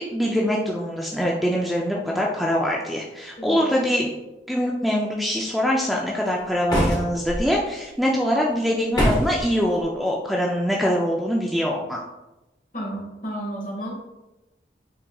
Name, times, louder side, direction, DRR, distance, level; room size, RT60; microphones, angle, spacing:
voice 1, 0.0-4.1 4.5-12.0, equal, ahead, -2 dB, 0.4 m, -23 dB
sound 1, 6.7-7.4 8.9-9.5, equal, 25° left, 1.2 m, -22 dB
voice 2, 12.7-13.9, right 1 dB, 50° left, -3 dB, 1.6 m, -32 dB
5.7 x 4.0 x 2.3 m, 1.0 s
head